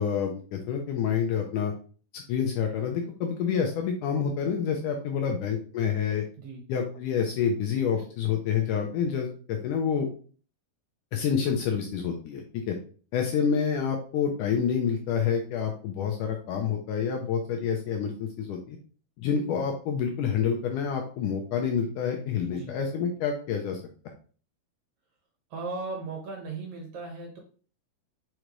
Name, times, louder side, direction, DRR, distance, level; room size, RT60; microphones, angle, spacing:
voice 1, 0.0-1.7 2.1-6.2 6.7-10.1 11.1-12.8 13.1-18.8 19.2-23.8, left 7 dB, 75° left, 3 dB, 2.0 m, -28 dB
voice 2, 25.5-27.4, right 3 dB, 60° right, 1 dB, 2.3 m, -37 dB
6.6 x 4.9 x 3.1 m, 0.41 s
omnidirectional pair, 4.3 m